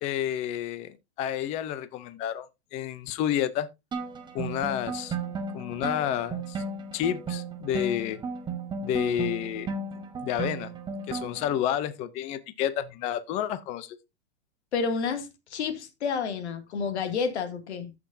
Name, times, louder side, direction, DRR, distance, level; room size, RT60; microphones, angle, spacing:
voice 1, 0.0-3.7 4.3-5.2 5.5-6.6 6.9-8.2 8.8-9.7 10.2-10.7 11.1-14.0, left 10 dB, 20° left, 0.5 m, -30 dB
sound 1, 3.9-11.6, right 4 dB, 15° right, 1.1 m, -35 dB
voice 2, 14.7-17.9, left 5 dB, 80° left, 2.3 m, -30 dB
14.5 x 6.0 x 2.6 m
supercardioid pair, 155°, 33 cm